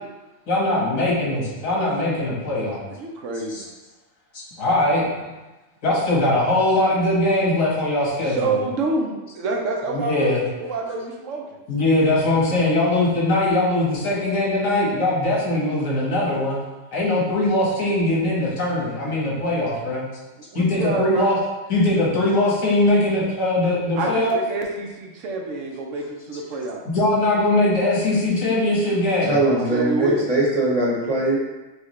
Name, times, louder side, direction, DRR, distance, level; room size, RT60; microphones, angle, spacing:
voice 1, 0.5-2.8 3.5-3.6 4.3-5.3 5.8-8.6 9.9-10.5 11.7-16.6 16.9-20.1 20.5-21.4 21.7-24.4 26.9-29.4, left 1 dB, 90° left, -5 dB, 1.7 m, -21 dB
voice 2, 2.9-3.6 8.2-11.4 20.5-21.4 24.0-26.8 29.5-30.2, right 3 dB, 75° right, 1 dB, 1.0 m, -27 dB
voice 3, 29.2-31.4, right 2 dB, 30° right, -5 dB, 0.9 m, -21 dB
6.4 x 2.3 x 3.1 m, 1.1 s
omnidirectional pair, 1.3 m